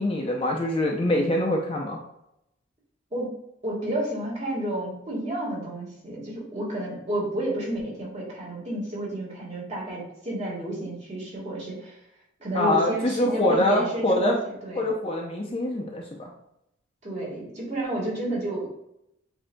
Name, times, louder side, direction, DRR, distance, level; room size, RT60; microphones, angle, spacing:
voice 1, 0.0-2.0 12.5-14.4 14.8-16.3, left 1 dB, 25° left, 0 dB, 0.5 m, -24 dB
voice 2, 3.6-12.0 12.4-14.8 17.0-18.7, right 1 dB, 35° right, -4 dB, 1.5 m, -31 dB
7.5 x 2.7 x 2.2 m, 0.82 s
head